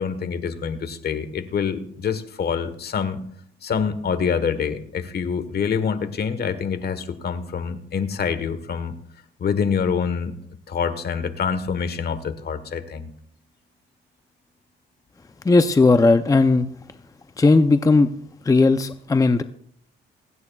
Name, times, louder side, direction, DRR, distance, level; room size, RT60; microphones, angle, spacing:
voice 1, 0.0-3.2 3.6-8.9 9.4-10.3 10.7-13.1, left 6 dB, 55° left, 11 dB, 1.3 m, -26 dB
voice 2, 15.4-16.7 17.4-18.1 18.4-19.4, left 3 dB, 15° left, 10 dB, 0.6 m, -16 dB
27.5 x 9.5 x 2.4 m, 0.65 s
cardioid pair, 90°, 20 cm